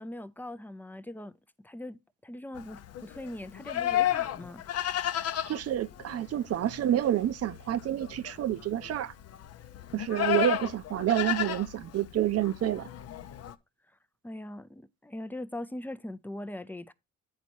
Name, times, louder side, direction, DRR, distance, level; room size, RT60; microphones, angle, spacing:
voice 1, 0.0-1.3 1.6-4.6 14.2-16.9, left 1 dB, 5° left, 0.4 m, -41 dB
Livestock farm animals working animals, 2.5-13.5, left 12 dB, 55° left, 0.6 m, -33 dB
voice 2, 5.5-9.1 9.9-12.9, right 12 dB, 55° right, 0.6 m, -28 dB
9.3 x 4.1 x 4.5 m
cardioid pair, 90°, 30 cm